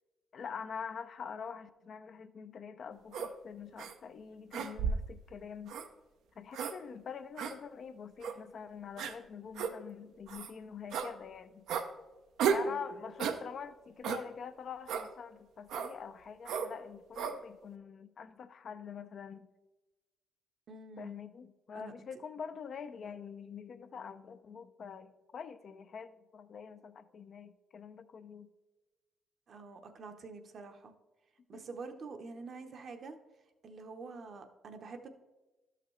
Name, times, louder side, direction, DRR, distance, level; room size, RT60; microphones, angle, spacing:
voice 1, 0.3-5.8 6.4-11.7 12.5-19.5 21.0-28.5 31.5-31.6, left 6 dB, 55° left, 10 dB, 0.5 m, -45 dB
sound 1, 3.1-3.3 3.8-3.9 4.5-5.1 5.7-5.9 6.5-6.7 7.4-7.5 8.2-8.4 9.0-9.1 9.5-9.7 10.3-10.5 10.9-11.1 11.7-11.9 12.4-12.7 13.2-13.4 14.0-14.2 14.9-15.1 15.7-15.9 16.4-16.7 17.1-17.4, right 6 dB, 80° right, 0.6 m, -33 dB
voice 2, 12.4-12.8 20.7-21.2 21.7-21.9 29.5-30.9 31.5-33.2 33.6-35.1, right 4 dB, 55° right, 6 dB, 0.8 m, -46 dB
12.0 x 5.8 x 3.2 m, 1.1 s
cardioid pair, 90°, 0 cm